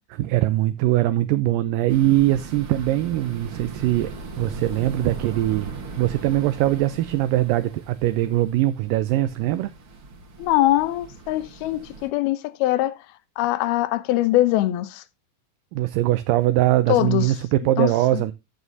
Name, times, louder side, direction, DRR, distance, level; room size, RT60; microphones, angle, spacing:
voice 1, 0.2-9.7 15.7-18.3, right 15 dB, 80° right, 2.1 m, -22 dB
sound 1, 1.9-12.1, right 2 dB, 45° right, 1.9 m, -39 dB
voice 2, 10.4-13.0 13.4-15.0 16.9-17.2 17.8-18.2, left 15 dB, 85° left, 2.7 m, -22 dB
14.0 x 7.2 x 2.7 m
omnidirectional pair, 4.3 m